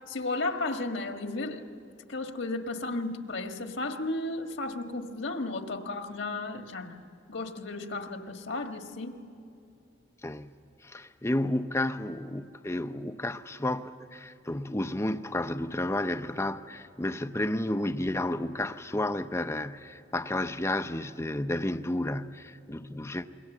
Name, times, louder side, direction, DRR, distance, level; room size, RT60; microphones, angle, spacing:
voice 1, 0.1-1.6 2.1-7.0 7.3-9.1, left 2 dB, 70° left, 1.6 m, -34 dB
voice 2, 10.2-10.6 10.8-23.3, left 1 dB, 15° left, 0.6 m, -31 dB
28.0 x 22.5 x 7.2 m
head